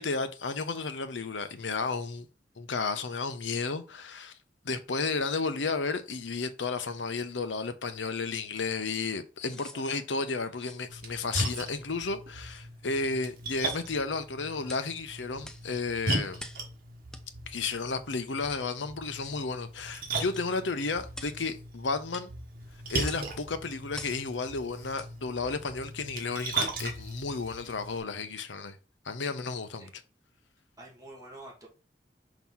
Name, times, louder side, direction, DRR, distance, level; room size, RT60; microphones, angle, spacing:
voice 1, 0.0-2.3 2.6-4.3 4.6-16.4 17.5-22.3 22.9-28.8 29.0-30.0, left 4 dB, 85° left, 0.8 m, -33 dB
sound 1, 8.6-8.7 9.4-9.8 10.6-10.8 11.5-11.7 12.5-12.7 13.5-13.9 14.7-14.9 15.4-15.7 16.4-16.7 17.1-17.2 17.7-17.9 18.5-18.7 19.2-19.4 20.3-20.5 21.1-21.4 22.1-22.3 23.0-23.3 23.9-24.2 24.9-25.1 25.6-25.7, left 1 dB, 5° left, 0.5 m, -47 dB
Splash splatter, 10.9-28.0, right 2 dB, 55° right, 1.6 m, -38 dB
voice 2, 30.8-31.7, right 1 dB, 20° right, 1.8 m, -47 dB
6.0 x 3.0 x 5.5 m
head